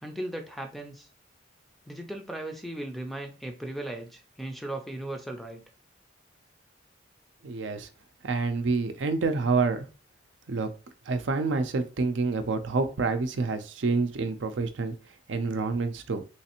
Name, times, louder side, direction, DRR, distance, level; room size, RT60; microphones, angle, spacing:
voice 1, 0.0-1.1 1.9-5.6, right 1 dB, ahead, 4 dB, 0.4 m, -37 dB
voice 2, 7.4-7.9 8.2-9.9 10.5-10.7 11.1-14.9 15.3-16.2, right 4 dB, 80° right, 8 dB, 0.5 m, -27 dB
3.2 x 3.1 x 2.9 m, 0.35 s
head